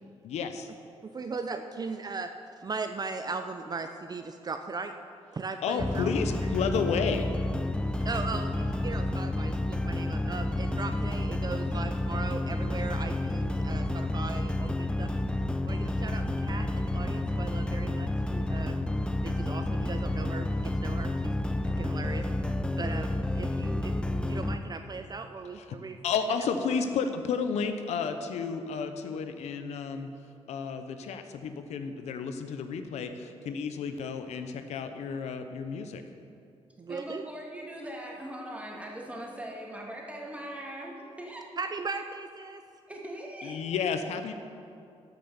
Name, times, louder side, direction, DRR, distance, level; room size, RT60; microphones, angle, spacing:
voice 1, 0.2-0.7 5.6-7.3 25.6-25.7 26.0-30.1 30.5-36.0 43.4-44.3, left 6 dB, 85° left, 0.7 m, -32 dB
voice 2, 1.0-2.3 2.6-4.9 5.3-6.1 8.0-15.1 15.6-18.8 19.2-21.3 21.7-23.9 24.3-26.0 36.9-37.3 41.6-42.6, right 4 dB, 35° right, 0.5 m, -38 dB
sound 1, 5.8-24.6, left 1 dB, 10° left, 0.5 m, -30 dB
voice 3, 36.9-41.5 42.9-43.6, right 1 dB, 10° right, 2.3 m, -40 dB
12.0 x 6.0 x 7.0 m
cardioid pair, 75°, 11 cm